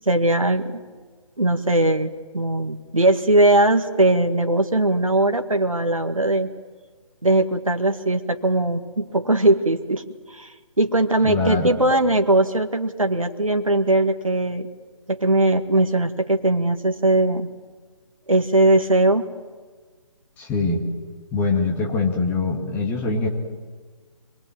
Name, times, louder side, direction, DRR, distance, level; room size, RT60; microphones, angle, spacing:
voice 1, 0.1-0.8 1.4-6.5 7.2-10.0 10.3-14.7 15.1-17.5 18.3-19.2, right 2 dB, 85° right, 5 dB, 1.9 m, -20 dB
voice 2, 11.2-11.7 20.4-20.8 21.3-23.3, left 3 dB, 10° left, 0 dB, 2.2 m, -23 dB
26.0 x 21.5 x 7.6 m, 1.5 s
figure-of-eight pair, 145°, 17 cm